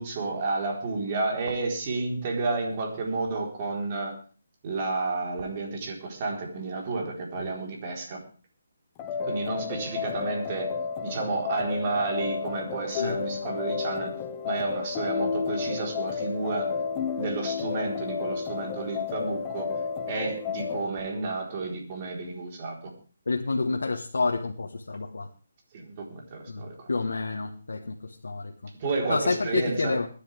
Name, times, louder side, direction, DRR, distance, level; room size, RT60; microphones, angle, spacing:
voice 1, 0.0-4.2 4.6-8.2 9.2-10.7 11.0-14.1 14.4-16.7 17.2-19.7 20.1-22.8 25.7-26.9 28.8-30.0, right 3 dB, 35° right, 0 dB, 4.2 m, -31 dB
sound 1, 9.0-20.9, left 6 dB, 20° left, 1.4 m, -32 dB
voice 2, 23.3-25.3 26.5-26.6 26.9-28.7 29.1-30.1, left 3 dB, 85° left, 2 dB, 1.5 m, -29 dB
22.0 x 10.5 x 3.5 m, 0.38 s
hypercardioid pair, 160°, 0 cm